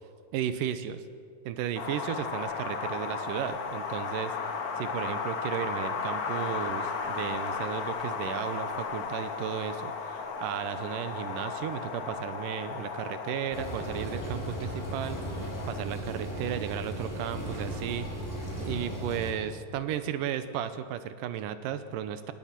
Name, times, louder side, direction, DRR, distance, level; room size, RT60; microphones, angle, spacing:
voice 1, 0.3-1.0 1.5-4.3 4.8-18.1 18.6-22.3, right 10 dB, 90° right, 11 dB, 2.5 m, -34 dB
Wind, 1.8-15.8, left 5 dB, 55° left, 1.0 m, -35 dB
sound 1, 13.5-19.3, equal, 5° left, 4.4 m, -36 dB
27.0 x 18.0 x 6.0 m, 2.2 s
omnidirectional pair, 3.7 m